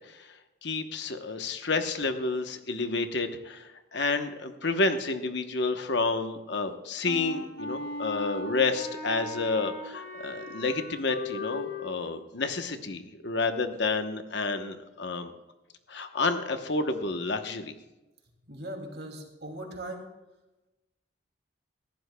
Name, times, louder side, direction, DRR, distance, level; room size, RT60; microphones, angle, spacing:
voice 1, 0.6-15.3 15.9-17.7, left 3 dB, 60° left, 7 dB, 1.0 m, -30 dB
Wind instrument woodwind instrument, 7.0-11.9, left 3 dB, 80° left, 3.0 m, -38 dB
voice 2, 18.5-20.0, right 1 dB, 55° right, 2 dB, 2.5 m, -39 dB
19.5 x 15.0 x 2.3 m, 1.0 s
head